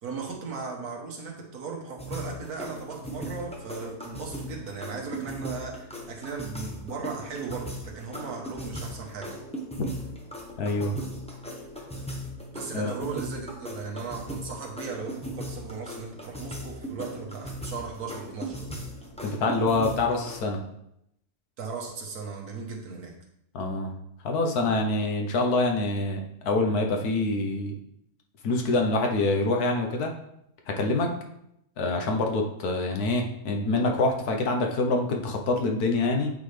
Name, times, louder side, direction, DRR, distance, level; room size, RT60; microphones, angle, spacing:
voice 1, 0.0-9.4 12.5-18.7 21.6-23.1, right 5 dB, 75° right, 0 dB, 1.7 m, -37 dB
sound 1, 2.0-20.4, equal, 5° left, 0.7 m, -38 dB
voice 2, 10.6-10.9 12.7-12.9 19.2-20.6 23.5-23.9 24.2-27.7 28.4-30.1 30.7-31.1 31.8-36.3, left 2 dB, 75° left, 2 dB, 1.5 m, -26 dB
8.9 x 4.1 x 3.3 m, 0.77 s
omnidirectional pair, 1.6 m